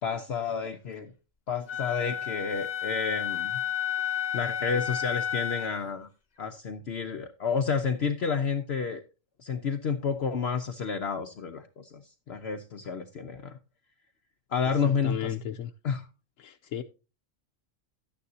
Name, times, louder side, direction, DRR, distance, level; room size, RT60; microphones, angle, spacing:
voice 1, 0.0-1.1 1.5-3.6 4.3-6.1 6.4-9.0 9.4-13.6 14.5-15.4 15.8-16.1, left 6 dB, 60° left, 0.9 m, -30 dB
Wind instrument woodwind instrument, 1.7-5.8, left 9 dB, 35° left, 1.1 m, -31 dB
voice 2, 15.0-15.7 16.4-16.8, left 10 dB, 75° left, 1.0 m, -34 dB
12.0 x 9.4 x 2.7 m
omnidirectional pair, 1.4 m